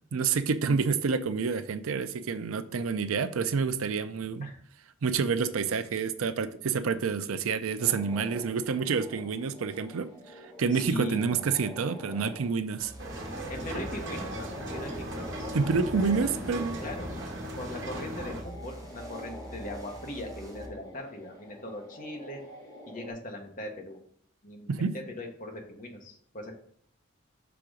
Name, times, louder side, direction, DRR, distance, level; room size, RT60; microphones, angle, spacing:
voice 1, 0.1-4.5 5.0-10.1 10.6-12.9 15.5-16.8 24.7-24.9, right 5 dB, 85° right, 0.5 m, -28 dB
sound 1, 7.8-23.1, left 1 dB, 20° left, 2.0 m, -47 dB
voice 2, 10.7-11.4 13.5-15.5 16.8-17.2 17.6-22.4 22.9-24.0 24.4-26.6, left 1 dB, 40° left, 1.3 m, -39 dB
sound 2, 12.8-20.7, right 1 dB, 15° right, 1.0 m, -47 dB
sound 3, 13.0-18.4, right 1 dB, 60° right, 1.3 m, -37 dB
5.9 x 3.8 x 5.0 m
head